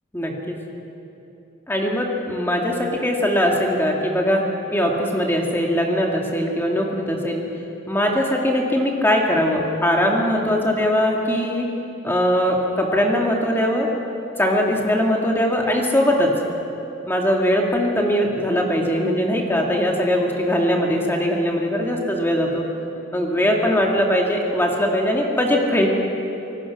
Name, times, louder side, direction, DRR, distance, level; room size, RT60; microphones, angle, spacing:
voice 1, 0.1-0.6 1.7-7.4 7.9-11.7 12.0-13.9 14.4-16.3 17.1-22.6 23.1-25.9, equal, 10° left, -1 dB, 2.3 m, -21 dB
26.5 x 19.0 x 6.1 m, 3.0 s
head